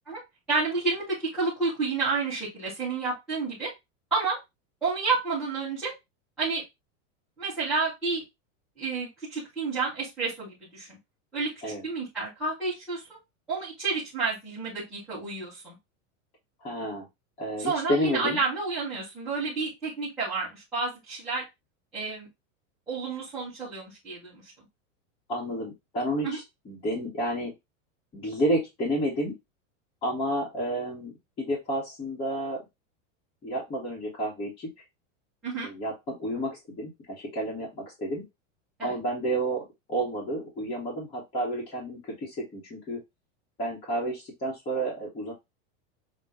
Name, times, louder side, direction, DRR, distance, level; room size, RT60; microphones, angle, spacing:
voice 1, 0.5-3.7 4.1-4.4 4.8-5.9 6.4-6.6 7.4-8.2 8.8-11.0 11.3-11.5 11.8-13.2 13.5-15.8 17.6-21.4 21.9-22.3 22.9-24.4 26.2-26.4 35.4-35.7 38.8-38.9, right 4 dB, ahead, -14 dB, 0.3 m, -30 dB
voice 2, 16.6-17.0 17.4-18.4 25.3-27.5 28.1-29.3 30.0-32.6 33.4-34.7 35.6-38.2 38.8-43.0 43.6-45.3, right 1 dB, 15° left, -4 dB, 0.9 m, -30 dB
5.5 x 2.1 x 3.4 m, 0.20 s
supercardioid pair, 180°, 39 cm